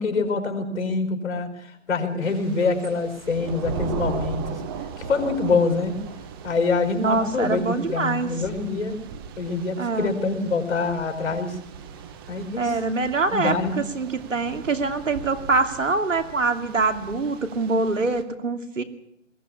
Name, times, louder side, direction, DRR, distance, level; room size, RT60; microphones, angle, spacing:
voice 1, 0.0-4.6 5.0-6.0 6.4-9.0 9.4-11.6 12.3-12.8 13.3-13.8, left 4 dB, 60° left, 6 dB, 4.9 m, -25 dB
Thunder / Rain, 2.2-18.2, right 6 dB, 20° right, 1.2 m, -37 dB
voice 2, 6.9-8.3 9.8-10.1 12.6-18.8, right 3 dB, 75° right, 7 dB, 2.7 m, -24 dB
21.0 x 16.0 x 8.6 m, 0.77 s
figure-of-eight pair, 150°, 38 cm